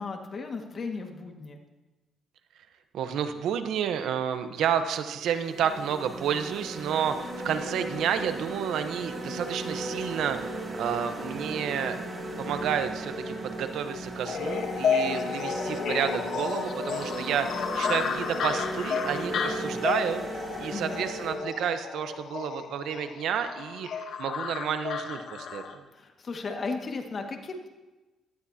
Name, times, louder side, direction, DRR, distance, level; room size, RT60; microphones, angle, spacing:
voice 1, 0.0-1.6 20.7-21.0 25.9-27.7, left 4 dB, 45° left, 3 dB, 1.9 m, -35 dB
voice 2, 2.9-12.0 12.4-25.6, right 8 dB, 80° right, 9 dB, 1.0 m, -30 dB
sound 1, 4.4-4.6 5.2-21.3, right 2 dB, 25° right, 4.2 m, -36 dB
sound 2, 14.2-25.7, left 6 dB, 65° left, 1.1 m, -32 dB
18.0 x 12.5 x 2.9 m, 1.1 s
cardioid pair, 90°, 0 cm